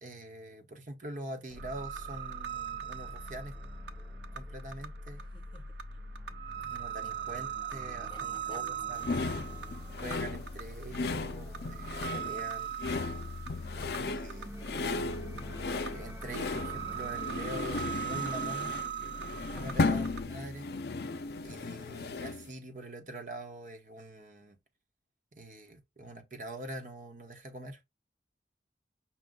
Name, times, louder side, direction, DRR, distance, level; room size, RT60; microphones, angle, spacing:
voice 1, 0.0-3.5 4.3-5.2 6.6-9.2 10.0-12.8 13.7-15.0 15.7-18.8 19.4-20.7 21.4-24.6 25.3-27.8, right 1 dB, 45° right, 1.1 m, -44 dB
sound 1, 1.5-18.5, right 1 dB, 15° right, 0.6 m, -52 dB
sound 2, 1.5-20.2, right 6 dB, 80° right, 0.7 m, -40 dB
voice 2, 5.2-5.8 8.1-8.7 19.5-19.8, left 2 dB, 25° left, 0.8 m, -55 dB
sound 3, 9.0-22.5, left 3 dB, 65° left, 0.5 m, -35 dB
6.0 x 2.3 x 3.8 m
head